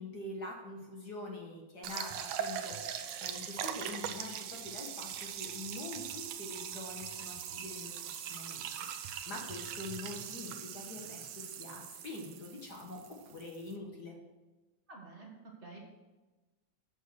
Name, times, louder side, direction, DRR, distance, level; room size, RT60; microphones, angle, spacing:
voice 1, 0.0-8.6 9.2-14.2, left 2 dB, 50° left, 0 dB, 1.3 m, -45 dB
sound 1, 1.8-13.7, right 9 dB, 75° right, 1.5 m, -41 dB
voice 2, 14.9-15.8, right 3 dB, 40° right, -2 dB, 0.9 m, -50 dB
8.1 x 7.5 x 6.3 m, 1.2 s
omnidirectional pair, 3.7 m